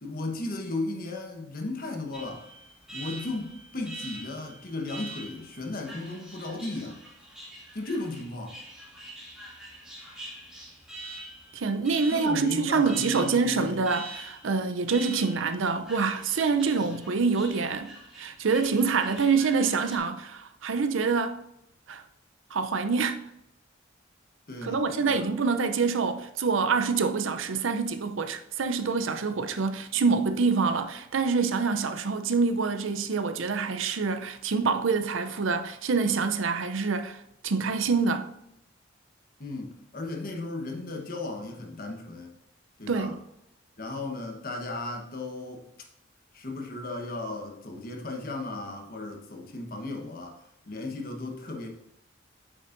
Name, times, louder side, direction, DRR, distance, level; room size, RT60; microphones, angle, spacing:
voice 1, 0.0-2.4 2.9-7.0 7.7-8.6 12.1-13.8 16.8-17.0 24.5-25.4 39.4-42.3 42.8-43.2 43.8-45.7 46.3-50.4 50.7-51.7, left 2 dB, 45° left, 1.1 m, -35 dB
Alarm, 2.1-20.0, right 1 dB, 5° right, 2.1 m, -45 dB
voice 2, 11.5-17.9 18.2-21.4 21.9-22.0 22.5-23.2 24.6-38.3 42.9-43.1, right 4 dB, 85° right, 0.6 m, -26 dB
8.7 x 6.4 x 2.6 m
head